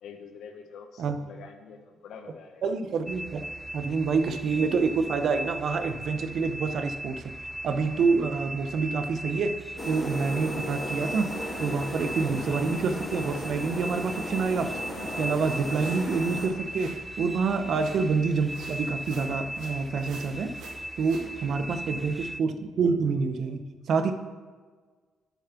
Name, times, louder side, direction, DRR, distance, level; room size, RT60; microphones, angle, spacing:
voice 1, 0.0-2.6 21.7-22.1, left 6 dB, 75° left, 6 dB, 1.1 m, -47 dB
voice 2, 2.6-7.2 7.6-9.5 9.8-11.3 11.6-14.7 15.0-16.9 17.2-20.5 21.0-23.6 23.9-24.1, right 4 dB, 65° right, 8 dB, 0.8 m, -27 dB
sound 1, 3.1-22.4, right 1 dB, 5° right, 0.4 m, -38 dB
sound 2, 9.8-16.5, equal, 25° left, 3.2 m, -36 dB
sound 3, 15.1-17.2 17.7-18.2 18.5-21.3, right 3 dB, 85° right, 1.9 m, -48 dB
7.3 x 7.2 x 5.9 m, 1.5 s
cardioid pair, 90°, 0 cm